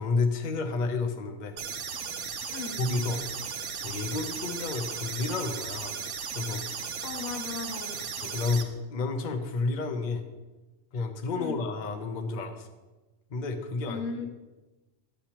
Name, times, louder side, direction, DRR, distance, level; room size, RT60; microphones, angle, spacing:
voice 1, 0.0-1.6 2.8-6.0 6.3-6.6 8.2-8.6 8.9-10.2 10.9-12.7 13.3-14.3, left 3 dB, 45° left, 5 dB, 0.8 m, -31 dB
sound 1, 1.6-8.6, right 6 dB, 70° right, 1.1 m, -36 dB
voice 2, 7.0-8.1 11.3-11.6 13.9-14.3, left 5 dB, 75° left, 5 dB, 1.2 m, -36 dB
11.5 x 8.4 x 2.9 m, 1.1 s
omnidirectional pair, 1.3 m